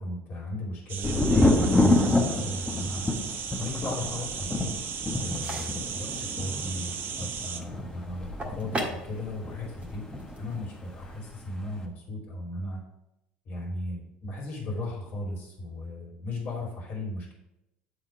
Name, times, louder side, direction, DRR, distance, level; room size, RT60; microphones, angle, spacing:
voice 1, 0.0-3.0 3.6-4.7 5.2-10.0 10.4-12.8 13.5-17.3, left 1 dB, 45° left, -2 dB, 2.7 m, -36 dB
sound 1, 0.9-7.6, right 7 dB, 45° right, 0.7 m, -36 dB
Thunder, 1.0-10.7 10.9-11.7, left 2 dB, 15° left, 1.3 m, -28 dB
sound 2, 5.3-11.2, right 1 dB, 25° right, 1.7 m, -40 dB
9.2 x 3.6 x 4.9 m, 0.87 s
figure-of-eight pair, 65°, 5 cm